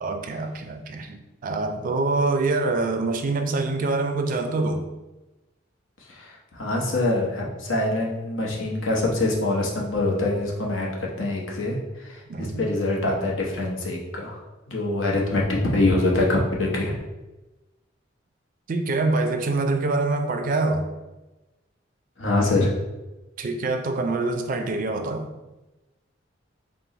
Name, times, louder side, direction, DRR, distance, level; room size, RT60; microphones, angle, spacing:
voice 1, 0.0-4.9 12.3-12.6 18.7-20.9 23.4-25.3, right 3 dB, 45° right, 6 dB, 0.4 m, -25 dB
voice 2, 6.1-14.4 14.7-17.0 22.2-22.7, left 2 dB, 85° left, -2 dB, 0.9 m, -24 dB
4.4 x 2.1 x 3.9 m, 1.1 s
head